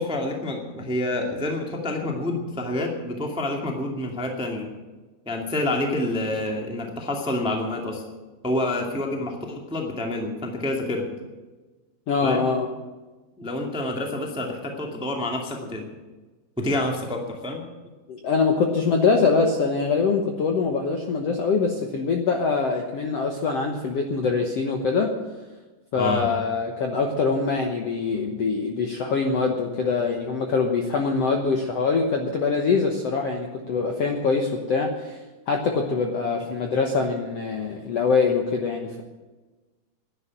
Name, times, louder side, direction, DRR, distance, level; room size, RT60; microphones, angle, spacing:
voice 1, 0.0-4.7 5.2-8.0 8.4-11.0 12.2-12.5 13.4-15.9 16.6-17.6 25.9-26.3, left 1 dB, 5° right, 1 dB, 1.0 m, -28 dB
voice 2, 12.1-12.7 18.1-25.1 25.9-35.2 35.5-39.0, left 4 dB, 65° left, 2 dB, 1.6 m, -23 dB
11.0 x 10.5 x 10.0 m, 1.2 s
omnidirectional pair, 4.3 m